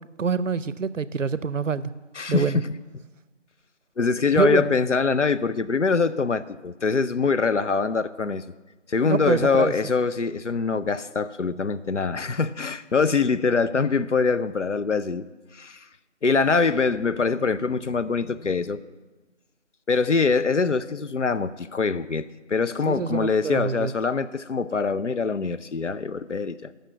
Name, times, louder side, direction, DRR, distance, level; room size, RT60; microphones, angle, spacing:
voice 1, 0.2-1.9 2.3-2.6 4.3-4.7 9.1-9.7 22.9-23.9, right 5 dB, 85° right, 17 dB, 0.6 m, -25 dB
voice 2, 2.1-2.7 4.0-8.4 8.9-15.3 15.5-15.9 16.2-18.8 19.9-26.7, left 4 dB, 70° left, 13 dB, 0.6 m, -24 dB
9.0 x 6.4 x 7.7 m, 1.2 s
figure-of-eight pair, 175°, 37 cm